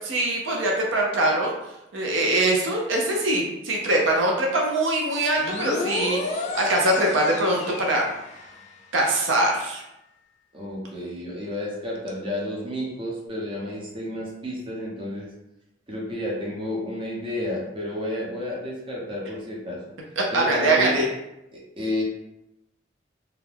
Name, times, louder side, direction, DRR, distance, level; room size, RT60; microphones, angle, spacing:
voice 1, 0.1-1.5 1.9-8.0 8.9-9.8 20.2-21.1, right 1 dB, 85° right, -1 dB, 0.6 m, -22 dB
sound 1, 5.3-8.8, left 3 dB, 35° left, 0.3 m, -32 dB
voice 2, 10.5-15.3 15.9-19.8 20.3-21.0 21.5-22.0, left 1 dB, 25° right, -4 dB, 0.7 m, -31 dB
2.4 x 2.2 x 3.3 m, 0.88 s
head